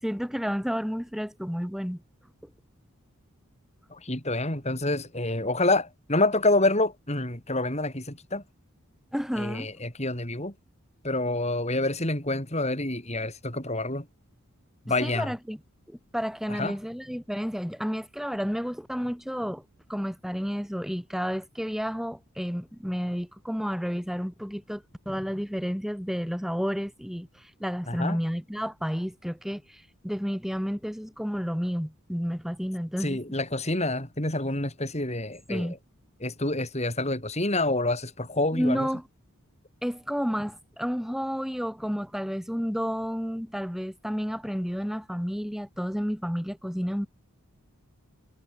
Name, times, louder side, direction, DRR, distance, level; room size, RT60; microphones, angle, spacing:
voice 1, 0.0-2.0 9.1-9.7 14.9-15.6 15.9-19.6 19.9-33.2 35.5-35.8 38.5-39.0 39.8-47.1, equal, ahead, 7.8 m, -31 dB
voice 2, 3.9-8.4 9.4-10.5 11.0-14.0 14.9-15.3 16.5-16.7 27.9-28.2 33.0-35.7 36.2-38.9, left 2 dB, 30° left, 6.7 m, -27 dB
head